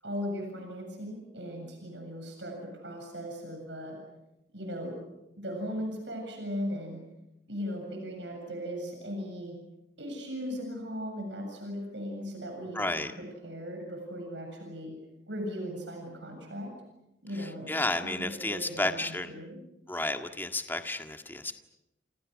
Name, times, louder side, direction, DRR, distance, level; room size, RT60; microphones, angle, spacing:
voice 1, 0.0-4.0 4.5-5.0 5.4-7.0 7.5-9.6 10.0-14.9 15.3-16.7 17.2-17.8 18.2-19.6, equal, 75° right, 3 dB, 7.5 m, -38 dB
voice 2, 12.7-13.1 17.4-19.3 19.9-21.6, left 2 dB, 10° left, 6 dB, 1.8 m, -32 dB
29.5 x 28.0 x 6.5 m, 0.88 s
head